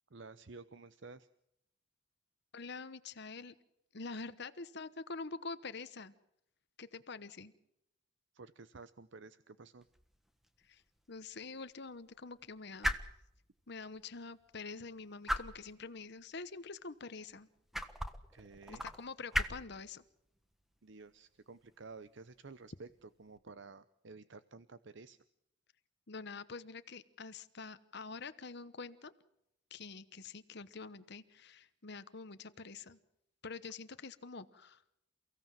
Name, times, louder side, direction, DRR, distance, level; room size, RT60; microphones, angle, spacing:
voice 1, 0.1-1.3 8.3-9.8 18.3-18.9 20.8-25.2, right 4 dB, 60° right, 14 dB, 0.8 m, -52 dB
voice 2, 2.5-3.5 3.9-6.1 6.8-7.5 10.6-10.8 11.1-12.9 13.7-17.5 18.7-20.0 26.1-29.1 29.7-33.0 33.4-34.8, left 4 dB, 55° left, 12 dB, 1.0 m, -46 dB
sound 1, 9.8-23.4, equal, ahead, 1.4 m, -43 dB
29.5 x 16.5 x 7.5 m, 0.79 s
head